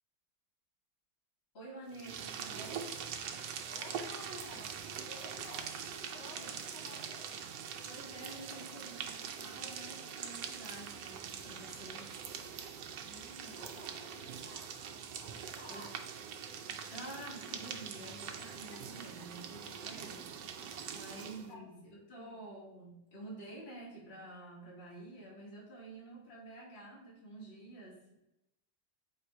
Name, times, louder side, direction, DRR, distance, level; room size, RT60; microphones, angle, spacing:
voice 1, 1.5-2.9 6.4-6.5 7.8-12.1 15.7-15.9 16.9-20.5 20.9-28.2, right 2 dB, 35° left, -6 dB, 1.6 m, -49 dB
sound 1, 1.9-21.5, right 7 dB, 75° right, 1.1 m, -43 dB
voice 2, 3.7-7.3 13.0-14.7 15.2-15.9 19.9-20.1 20.3-20.5 20.8-21.7 22.2-22.4, left 1 dB, 70° left, -5 dB, 2.0 m, -53 dB
3.4 x 3.2 x 4.5 m, 0.88 s
omnidirectional pair, 2.0 m